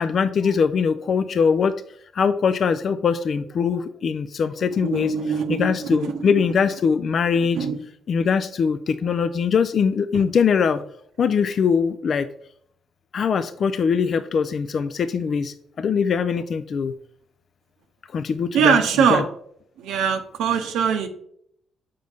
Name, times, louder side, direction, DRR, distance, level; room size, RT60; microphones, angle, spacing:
voice 1, 0.0-1.8 2.1-5.1 5.5-7.6 8.1-10.8 11.2-12.3 13.1-16.9 18.1-18.8 19.1-19.2, left 6 dB, 55° left, 11 dB, 0.3 m, -22 dB
voice 2, 4.7-6.3 7.3-7.8 18.5-19.2 19.8-21.1, right 7 dB, 85° right, 5 dB, 0.7 m, -22 dB
6.6 x 5.2 x 3.4 m, 0.67 s
cardioid pair, 90°, 0 cm